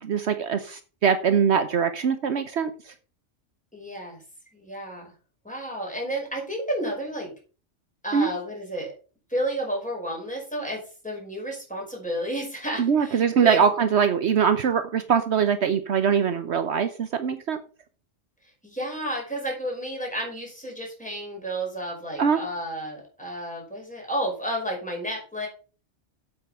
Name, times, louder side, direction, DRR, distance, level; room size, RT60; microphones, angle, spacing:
voice 1, 0.0-2.7 8.1-8.3 12.8-17.6 22.2-22.4, right 7 dB, 65° right, 10 dB, 1.1 m, -22 dB
voice 2, 3.7-4.2 4.5-5.1 5.4-7.3 8.0-8.9 9.3-13.9 18.6-25.5, equal, 5° left, -2 dB, 5.2 m, -31 dB
8.4 x 7.9 x 5.6 m, 0.37 s
omnidirectional pair, 1.3 m